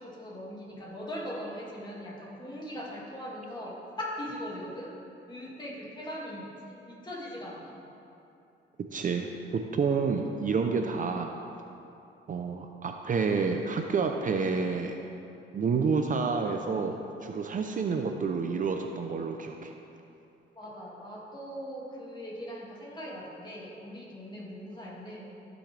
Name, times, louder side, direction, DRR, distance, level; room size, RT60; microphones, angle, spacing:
voice 1, 0.0-4.9 5.3-7.8 20.6-25.3, equal, 20° left, -5 dB, 2.3 m, -40 dB
voice 2, 8.9-11.3 12.3-15.0 15.5-19.7, right 5 dB, 40° right, 4 dB, 0.6 m, -29 dB
14.5 x 6.3 x 3.4 m, 2.7 s
cardioid pair, 90°, 20 cm